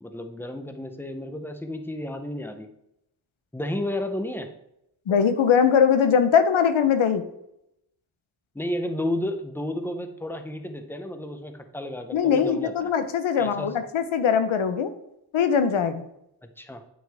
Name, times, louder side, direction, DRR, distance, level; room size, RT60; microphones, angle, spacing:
voice 1, 0.0-2.7 3.5-4.5 8.5-12.7 13.4-13.7 16.4-16.8, left 1 dB, 5° left, 7 dB, 0.6 m, -32 dB
voice 2, 5.1-7.2 12.1-14.9 15.3-16.1, left 7 dB, 85° left, 10 dB, 0.9 m, -21 dB
9.2 x 6.1 x 3.4 m, 0.80 s
wide cardioid pair, 155°, 46 cm